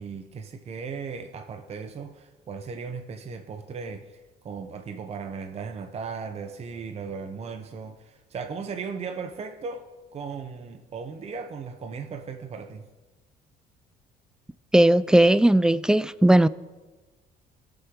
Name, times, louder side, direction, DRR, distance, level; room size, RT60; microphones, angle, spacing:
voice 1, 0.0-4.0 4.4-9.9 10.1-12.8, right 5 dB, 40° right, 6 dB, 0.8 m, -36 dB
voice 2, 14.7-16.5, right 1 dB, 5° right, 17 dB, 0.3 m, -17 dB
19.5 x 7.0 x 3.7 m, 1.2 s
cardioid pair, 110°, 17 cm